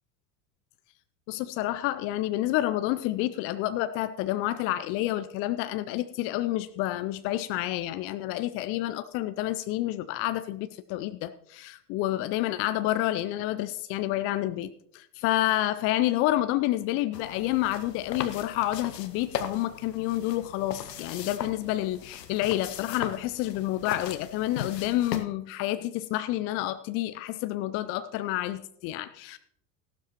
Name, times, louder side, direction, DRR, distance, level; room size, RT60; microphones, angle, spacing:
voice 1, 1.3-29.4, left 15 dB, 30° left, 12 dB, 0.4 m, -29 dB
sound 1, 17.1-25.2, left 8 dB, 80° left, 0.8 m, -38 dB
15.0 x 12.0 x 3.0 m, 0.69 s
figure-of-eight pair, 75°, 48 cm